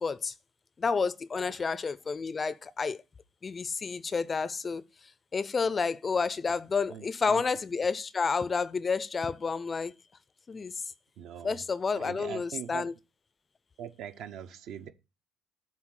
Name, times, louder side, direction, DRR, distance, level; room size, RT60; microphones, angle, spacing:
voice 1, 0.0-0.3 0.8-3.0 3.4-4.8 5.3-9.9 10.5-10.8 11.4-12.9, left 5 dB, 25° left, 0.4 m, -30 dB
voice 2, 6.9-7.4 11.2-11.6 12.0-12.9 13.8-14.9, right 9 dB, 65° right, 0.6 m, -42 dB
7.4 x 3.8 x 6.3 m
cardioid pair, 115°, 0 cm